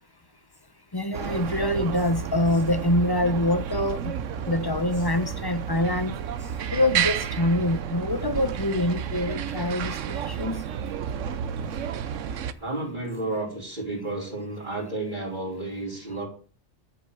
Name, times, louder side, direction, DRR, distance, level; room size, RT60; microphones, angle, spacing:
voice 1, 0.9-4.2 4.5-6.1 6.7-10.7, left 1 dB, 20° left, 0.7 m, -25 dB
sound 1, 1.1-12.5, right 8 dB, 75° right, 1.1 m, -31 dB
voice 2, 12.6-16.3, right 2 dB, 35° right, 3.9 m, -32 dB
11.0 x 6.8 x 7.9 m
omnidirectional pair, 1.3 m